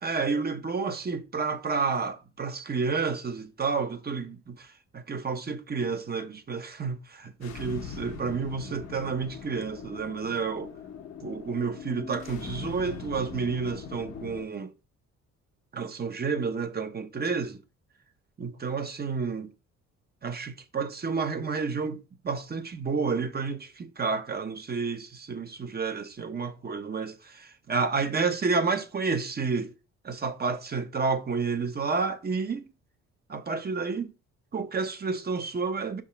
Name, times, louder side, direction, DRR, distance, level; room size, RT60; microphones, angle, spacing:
voice 1, 0.0-10.7 11.2-14.7 15.7-17.6 18.4-19.5 20.2-22.0 22.2-29.7 30.0-32.7 33.3-34.1 34.5-36.0, right 4 dB, 30° right, 0.9 m, -30 dB
sound 1, 7.4-14.5, left 6 dB, 65° left, 1.2 m, -41 dB
5.8 x 3.6 x 5.7 m
cardioid pair, 90°, 30 cm